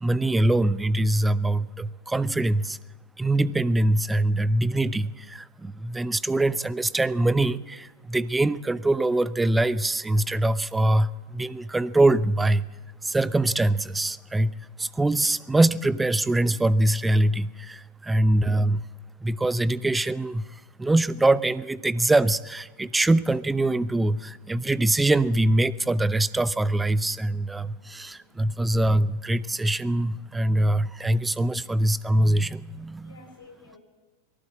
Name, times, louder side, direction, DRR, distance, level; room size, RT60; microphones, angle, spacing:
voice 1, 0.0-2.8 3.2-12.7 13.0-18.9 19.2-33.2, right 1 dB, 10° right, 19 dB, 0.6 m, -23 dB
voice 2, 27.7-28.4 31.2-31.4 33.0-33.8, left 3 dB, 65° left, 4 dB, 5.4 m, -53 dB
19.5 x 16.5 x 8.6 m, 1.2 s
figure-of-eight pair, 90°, 0 cm